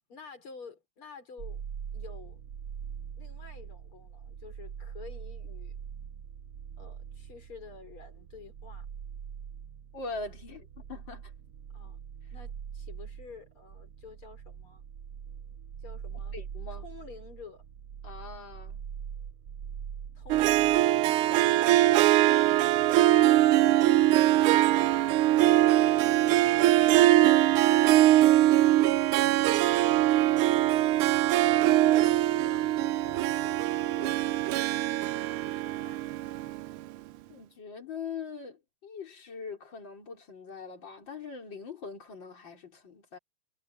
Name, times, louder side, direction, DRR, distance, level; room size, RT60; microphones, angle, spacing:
voice 1, 0.1-1.6 1.9-2.4 3.2-5.8 6.8-8.9 11.7-12.0 12.3-14.9 15.8-16.4 16.7-17.6 20.2-22.1 22.8-31.8 32.2-34.2 34.6-36.1, left 5 dB, 90° left, 5.3 m, -51 dB
sound 1, 1.4-20.8, right 8 dB, 55° right, 1.0 m, -43 dB
voice 2, 9.9-11.3 16.3-16.9 18.0-18.8 37.3-43.2, left 5 dB, 60° left, 4.6 m, -42 dB
Harp, 20.3-36.8, right 14 dB, 85° right, 1.5 m, -22 dB
omnidirectional pair, 2.3 m